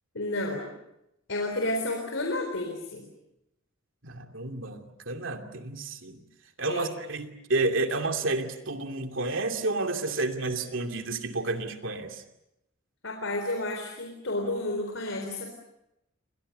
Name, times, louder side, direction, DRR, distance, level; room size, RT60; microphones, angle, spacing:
voice 1, 0.1-0.7 1.3-3.0 6.7-6.9 13.0-15.5, left 2 dB, 75° left, 2 dB, 4.1 m, -31 dB
voice 2, 4.0-6.2 6.6-12.2, right 2 dB, 75° right, 5 dB, 2.7 m, -30 dB
30.0 x 24.5 x 6.7 m, 0.85 s
head